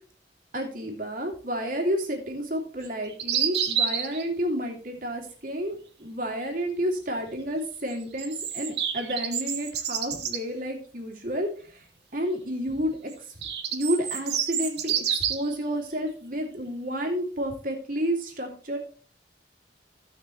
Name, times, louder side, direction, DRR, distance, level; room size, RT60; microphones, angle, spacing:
voice 1, 0.5-11.8 12.1-13.1 13.7-18.8, equal, 50° right, 2 dB, 2.6 m, -30 dB
sound 1, 2.8-4.2 7.9-10.4 13.1-15.5, right 8 dB, 70° right, 1.9 m, -28 dB
16.5 x 5.9 x 3.2 m, 0.40 s
head